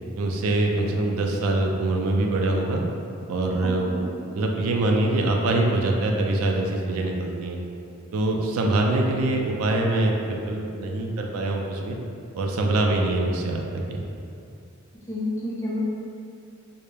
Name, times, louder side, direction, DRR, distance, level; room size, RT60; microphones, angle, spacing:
voice 1, 0.2-2.8 3.3-3.9 4.3-7.6 8.1-12.0 12.3-14.0, right 2 dB, 80° right, 1 dB, 0.3 m, -24 dB
voice 2, 3.6-4.0 15.1-15.8, left 1 dB, 15° left, -7 dB, 0.4 m, -30 dB
2.2 x 2.0 x 3.1 m, 2.5 s
head